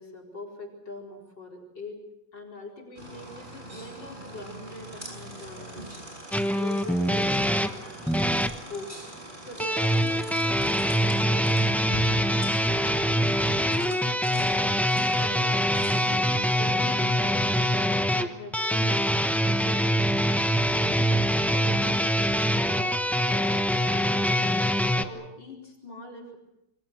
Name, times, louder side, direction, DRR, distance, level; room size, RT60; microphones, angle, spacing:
voice 1, 0.0-2.0 2.3-5.9 6.5-8.9 9.5-12.2 12.7-14.6 15.2-17.6 18.1-20.0 20.7-24.5 24.9-26.4, left 2 dB, 65° left, 0 dB, 5.4 m, -42 dB
sound 1, 2.9-17.4, right 1 dB, 25° right, 6.8 m, -43 dB
sound 2, 6.3-8.6 9.6-25.0, equal, ahead, 0.6 m, -24 dB
28.0 x 23.5 x 6.3 m, 0.85 s
omnidirectional pair, 2.1 m